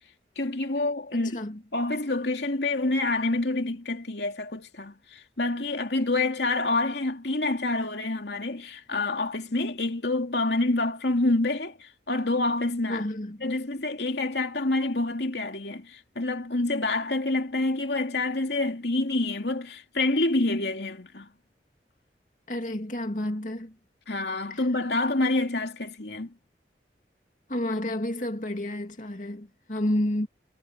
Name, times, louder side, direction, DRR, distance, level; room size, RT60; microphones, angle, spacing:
voice 1, 0.4-1.5 1.7-13.0 13.4-21.3 24.1-26.3, left 2 dB, 70° left, 2.7 m, -27 dB
voice 2, 1.1-1.6 12.9-13.5 22.5-23.8 24.5-24.7 27.5-30.3, left 1 dB, 45° left, 2.6 m, -30 dB
head